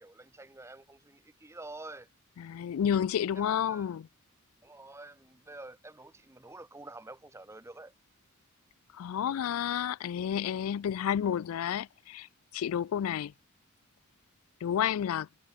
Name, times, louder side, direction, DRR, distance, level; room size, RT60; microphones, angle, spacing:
voice 1, 0.0-2.1 3.7-3.9 4.6-7.9, right 2 dB, 15° right, 0.8 m, -48 dB
voice 2, 2.4-4.1 8.9-12.3 12.5-13.3 14.6-15.3, left 9 dB, 85° left, 0.3 m, -30 dB
head